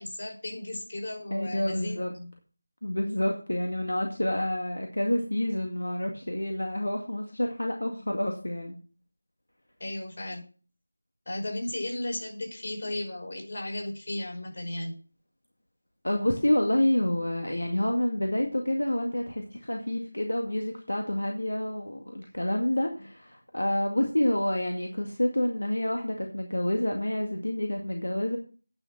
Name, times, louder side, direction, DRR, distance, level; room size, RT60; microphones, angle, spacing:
voice 1, 0.0-2.3 9.8-10.4 11.3-15.0, left 1 dB, 50° left, 0 dB, 5.6 m, -35 dB
voice 2, 1.3-2.1 2.8-8.7 16.0-28.4, left 1 dB, 85° left, 2 dB, 2.0 m, -28 dB
9.9 x 6.7 x 6.1 m, 0.39 s
figure-of-eight pair, 170°, 0 cm